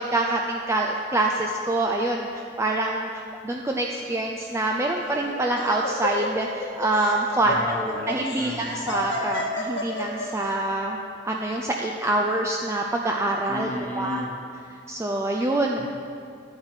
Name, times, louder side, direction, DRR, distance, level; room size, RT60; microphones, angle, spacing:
voice 1, 0.0-3.1 3.4-7.6 8.1-13.7 14.0-14.2 14.9-15.8, right 2 dB, 15° right, 0 dB, 0.4 m, -25 dB
Laughter, 5.0-10.4, left 2 dB, 75° left, 1.7 m, -32 dB
voice 2, 7.4-9.2 13.5-14.3 15.8-15.9, left 1 dB, 10° left, -1 dB, 1.1 m, -34 dB
10.0 x 7.3 x 4.9 m, 2.3 s
head